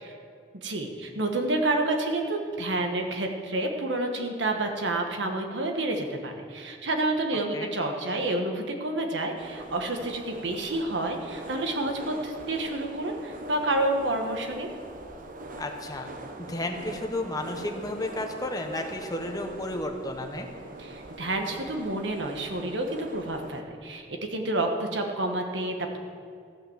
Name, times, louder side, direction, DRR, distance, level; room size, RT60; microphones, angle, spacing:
voice 1, 0.6-14.7 20.8-26.0, right 2 dB, 85° right, 3 dB, 1.4 m, -29 dB
sound 1, 9.4-23.6, right 2 dB, 50° right, 0.8 m, -42 dB
voice 2, 15.6-16.1 16.5-20.5, left 1 dB, 20° left, 4 dB, 1.0 m, -32 dB
15.0 x 5.8 x 7.4 m, 2.4 s
head